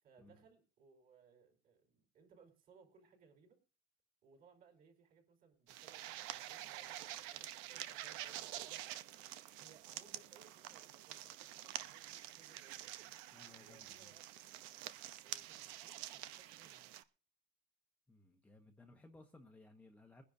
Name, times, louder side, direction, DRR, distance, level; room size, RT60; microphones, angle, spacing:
voice 1, 0.0-3.6 4.2-8.8 9.6-12.9 13.6-14.2 15.2-16.9, right 5 dB, 45° right, 2 dB, 5.2 m, -66 dB
sound 1, 5.7-17.0, right 14 dB, 85° right, 0.8 m, -48 dB
voice 2, 13.3-14.1 18.1-20.2, left 2 dB, 5° left, 2 dB, 1.0 m, -61 dB
22.5 x 10.0 x 2.7 m, 0.36 s
cardioid pair, 155°, 20 cm